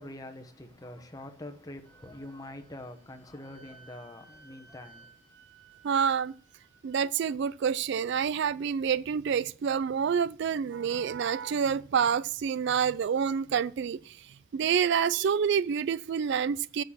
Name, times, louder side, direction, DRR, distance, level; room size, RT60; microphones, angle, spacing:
voice 1, 0.0-5.1, left 1 dB, 15° left, 1.0 m, -45 dB
Wind instrument woodwind instrument, 1.8-7.0, right 4 dB, 30° right, 4.2 m, -58 dB
voice 2, 5.8-6.3 6.8-16.8, right 7 dB, 55° right, 0.3 m, -28 dB
8.6 x 6.4 x 5.6 m
head